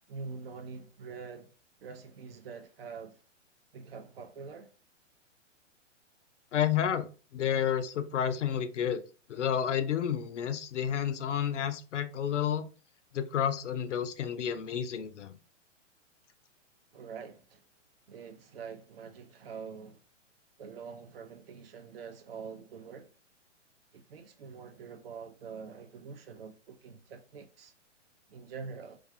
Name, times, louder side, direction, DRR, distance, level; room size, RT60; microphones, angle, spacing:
voice 1, 0.1-1.5 1.8-3.2 3.7-4.7 16.9-17.6 18.1-20.0 20.6-23.1 23.9-27.7 28.3-29.0, right 5 dB, 50° right, 0.5 m, -45 dB
voice 2, 6.5-7.1 7.3-9.0 9.3-12.7 13.1-15.4, left 9 dB, 70° left, 0.5 m, -30 dB
2.3 x 2.3 x 2.5 m
figure-of-eight pair, 115°, 37 cm